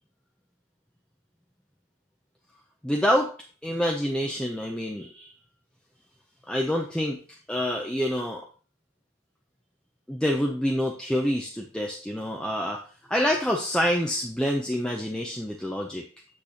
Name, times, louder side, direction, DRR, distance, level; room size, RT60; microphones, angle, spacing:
voice 1, 2.8-3.3 3.6-5.3 6.5-7.2 7.5-8.4 10.1-12.8 13.1-16.0, equal, 5° left, -1 dB, 0.5 m, -27 dB
8.4 x 6.6 x 2.8 m, 0.39 s
head